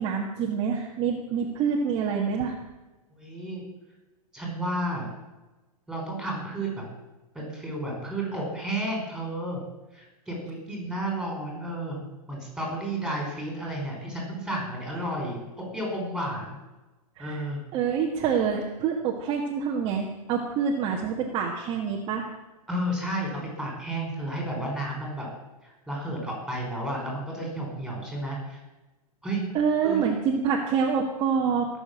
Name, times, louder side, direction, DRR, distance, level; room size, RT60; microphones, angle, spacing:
voice 1, 0.0-2.5 17.2-17.4 17.7-22.3 29.5-31.7, right 6 dB, 25° right, -1 dB, 1.7 m, -26 dB
voice 2, 3.1-3.6 4.3-5.1 5.9-7.0 7.3-9.6 9.9-15.4 15.7-16.6 17.2-17.6 22.7-23.3 23.6-25.3 25.6-28.6 29.2-29.4 29.8-30.0, right 1 dB, ahead, -1 dB, 5.2 m, -32 dB
19.5 x 7.3 x 8.8 m, 1.1 s
hypercardioid pair, 155°, 20 cm